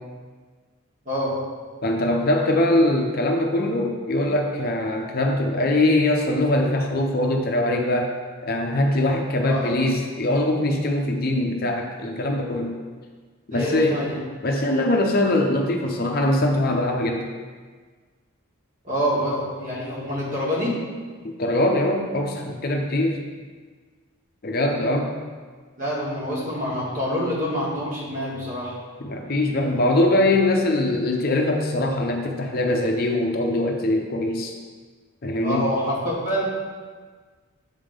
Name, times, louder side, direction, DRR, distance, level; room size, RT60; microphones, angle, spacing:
voice 1, 1.8-8.1 8.4-12.8 13.5-14.1 14.4-17.3 21.4-23.2 24.4-25.2 29.0-34.5 35.2-35.7, left 1 dB, 45° left, 2 dB, 0.6 m, -22 dB
voice 2, 9.4-9.7 13.5-14.1 18.8-20.7 25.8-28.7 35.4-36.4, equal, 35° right, -6 dB, 1.9 m, -26 dB
8.0 x 3.7 x 5.1 m, 1.5 s
head